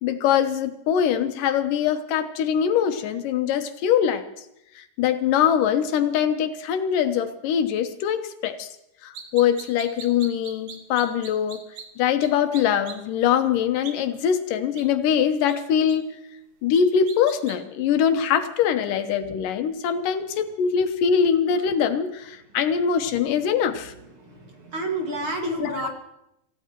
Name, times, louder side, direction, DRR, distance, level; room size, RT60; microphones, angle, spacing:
voice 1, 0.0-4.2 4.8-8.7 9.0-11.6 12.0-16.1 16.6-23.9 25.6-25.9, left 8 dB, 85° left, 8 dB, 2.6 m, -23 dB
sound 1, 9.2-11.8 12.2-12.3 12.5-12.9 13.8-13.9 14.7-14.8 15.5-15.6 15.9-16.0 16.7-17.6, right 7 dB, 80° right, 3.1 m, -39 dB
voice 2, 24.1-25.9, right 1 dB, 45° right, 1 dB, 2.5 m, -29 dB
27.5 x 15.0 x 3.0 m, 0.82 s
omnidirectional pair, 3.7 m